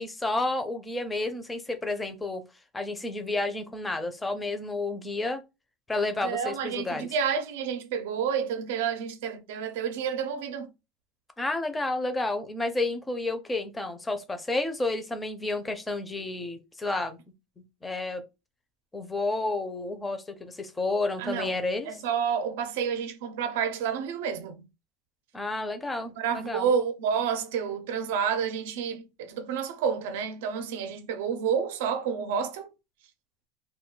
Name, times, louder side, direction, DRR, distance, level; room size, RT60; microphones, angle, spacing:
voice 1, 0.0-2.4 2.7-5.4 5.9-7.1 11.4-17.2 17.8-18.2 18.9-21.9 25.3-26.7, left 2 dB, 10° left, 0.4 m, -31 dB
voice 2, 6.2-10.7 21.2-21.6 21.9-24.6 26.2-32.7, right 7 dB, 80° right, 0.5 m, -29 dB
2.2 x 2.2 x 3.7 m
cardioid pair, 165°, 0 cm